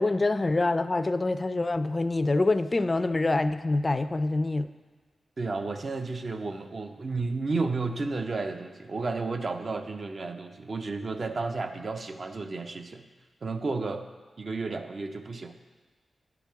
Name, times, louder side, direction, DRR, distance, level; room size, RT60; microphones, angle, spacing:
voice 1, 0.0-4.7, left 2 dB, 30° left, 12 dB, 0.3 m, -25 dB
voice 2, 5.4-13.1 13.4-14.0 14.4-15.5, right 3 dB, 50° right, 7 dB, 0.6 m, -32 dB
9.3 x 5.9 x 3.5 m, 1.4 s
cardioid pair, 75°, 0 cm